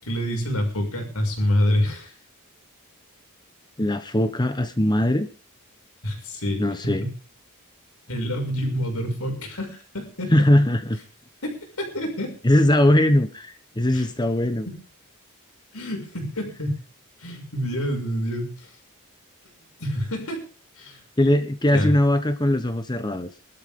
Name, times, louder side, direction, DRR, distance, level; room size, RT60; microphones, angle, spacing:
voice 1, 0.0-2.1 6.0-7.1 8.1-10.3 11.4-12.3 13.9-14.1 15.7-16.8 17.2-18.7 19.8-20.4 20.8-21.0 21.6-21.9, equal, 75° left, 3 dB, 6.8 m, -27 dB
voice 2, 3.8-5.3 6.6-7.1 10.3-11.0 12.4-14.7 21.2-23.3, left 1 dB, 20° left, 9 dB, 1.0 m, -20 dB
24.5 x 13.0 x 3.8 m, 0.37 s
head